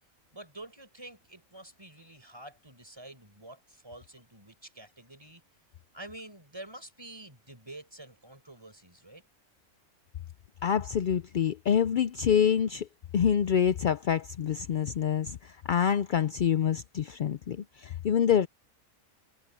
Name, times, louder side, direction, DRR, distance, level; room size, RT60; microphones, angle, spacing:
voice 1, 0.3-5.4 5.9-9.2, right 1 dB, 20° right, 5.0 m, -48 dB
voice 2, 10.6-12.9 13.1-18.5, left 8 dB, 70° left, 0.4 m, -26 dB
omnidirectional pair, 1.4 m